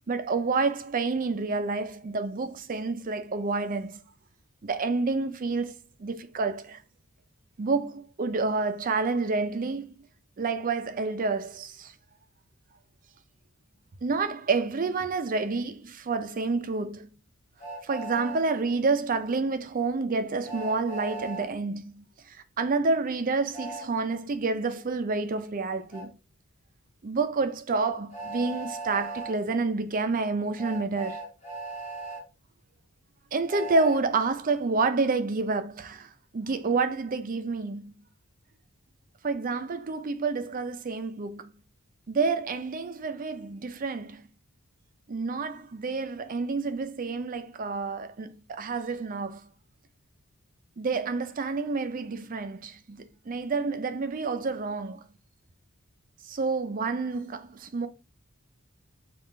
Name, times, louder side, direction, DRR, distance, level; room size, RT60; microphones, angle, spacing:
voice 1, 0.1-4.0 4.6-5.7 6.0-6.8 7.6-9.9 10.4-11.9 14.0-17.1 17.8-26.1 27.0-31.2 33.3-37.9 39.2-41.5 42.1-44.2 45.1-49.4 50.8-55.0 56.2-57.9, right 4 dB, 40° right, 0.4 m, -29 dB
Train, 17.6-18.4 20.4-21.5 23.5-23.9 25.9-26.1 28.1-29.3 30.6-32.2 33.5-34.0, right 3 dB, 30° left, 1.1 m, -37 dB
3.7 x 2.4 x 3.7 m
head